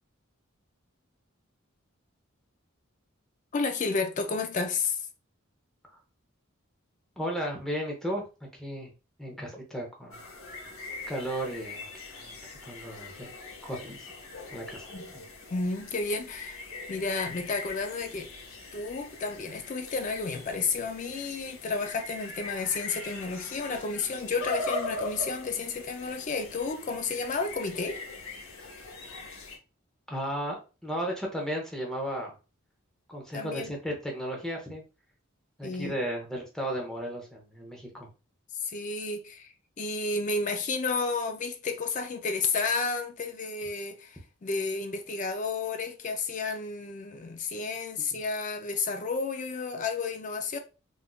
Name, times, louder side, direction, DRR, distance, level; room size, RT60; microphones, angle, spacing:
voice 1, 3.5-5.0 9.4-9.5 14.9-15.1 15.5-16.6 16.9-18.3 18.7-28.0 33.3-33.8 35.6-36.0 38.6-50.6, left 4 dB, 35° left, 0.4 m, -31 dB
voice 2, 7.2-8.3 8.5-8.9 9.2-10.2 11.1-12.3 12.7-13.3 13.6-14.1 14.5-14.8 30.1-32.3 33.1-34.8 35.6-38.1, equal, 5° left, 0.7 m, -34 dB
sound 1, 10.1-29.6, left 3 dB, 80° left, 0.8 m, -41 dB
3.5 x 2.5 x 2.3 m
head